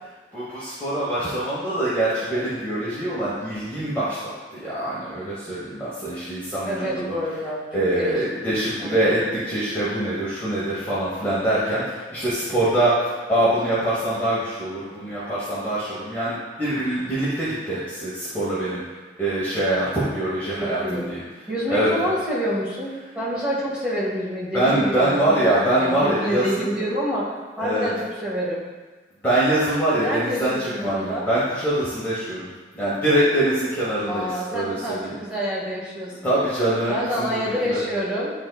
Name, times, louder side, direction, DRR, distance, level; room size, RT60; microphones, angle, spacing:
voice 1, 0.3-7.1 7.7-12.9 13.3-18.8 19.2-21.2 21.7-22.1 24.5-26.7 27.6-27.9 29.2-32.5 32.7-35.1 36.2-37.4 37.7-37.8, right 1 dB, 10° left, -10 dB, 1.2 m, -24 dB
voice 2, 6.6-7.7 8.0-8.3 8.8-9.3 20.5-21.1 21.5-28.6 30.0-31.3 34.0-36.4 36.9-38.3, equal, 5° right, -9 dB, 1.8 m, -27 dB
10.5 x 4.0 x 2.3 m, 1.3 s
head